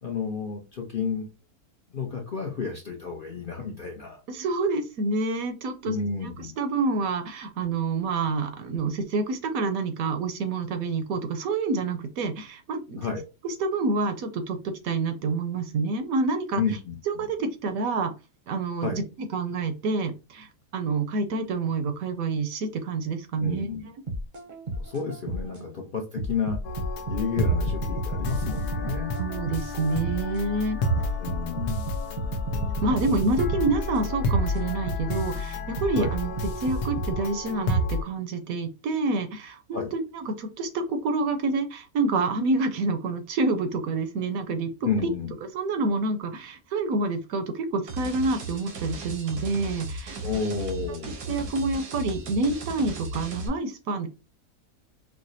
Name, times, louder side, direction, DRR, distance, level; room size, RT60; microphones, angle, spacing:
voice 1, 0.0-1.3 1.9-4.2 5.8-6.5 13.0-13.2 16.5-17.3 18.8-19.0 23.4-23.9 24.8-26.6 27.1-29.1 31.2-32.0 36.0-36.1 39.7-39.9 44.8-45.3 50.2-51.2, left 5 dB, 55° left, 1 dB, 0.6 m, -31 dB
voice 2, 4.3-6.0 6.2-13.0 13.4-16.6 17.1-18.1 18.5-19.0 19.3-23.7 29.2-30.8 32.8-36.3 36.6-44.7 45.0-45.1 45.5-50.2 51.3-54.1, right 3 dB, 70° right, 7 dB, 1.0 m, -28 dB
sound 1, 24.1-25.6 26.2-30.4 31.0-35.2 35.8-37.2, equal, 45° right, 0.7 m, -32 dB
sound 2, 26.6-38.0, left 1 dB, 85° left, 1.2 m, -30 dB
sound 3, 47.9-53.5, right 1 dB, 90° right, 1.4 m, -36 dB
4.8 x 2.0 x 2.6 m, 0.29 s
omnidirectional pair, 1.6 m